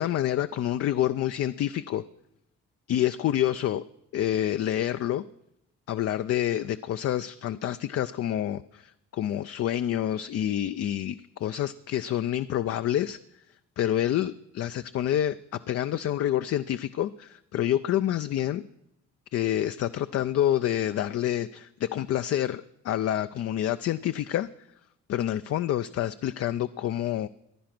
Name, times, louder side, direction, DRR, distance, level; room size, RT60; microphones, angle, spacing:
voice 1, 0.0-2.0 2.9-3.8 4.1-5.2 5.9-13.2 13.8-18.6 19.3-24.5 25.1-27.3, left 11 dB, 55° left, 12 dB, 0.4 m, -28 dB
15.5 x 10.0 x 6.0 m, 0.85 s
cardioid pair, 90°, 30 cm